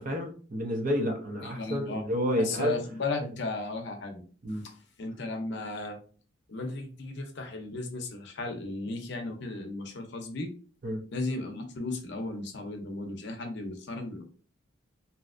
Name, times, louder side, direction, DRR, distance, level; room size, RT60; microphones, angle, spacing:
voice 1, 0.0-2.8 3.2-3.3 4.4-4.6 10.8-11.0, equal, 45° right, 2 dB, 0.7 m, -30 dB
voice 2, 1.4-2.0 2.4-4.2 4.6-4.7 5.0-6.0 6.5-10.5 11.1-14.2, left 2 dB, 60° left, 4 dB, 0.7 m, -35 dB
3.3 x 2.7 x 2.5 m, 0.40 s
head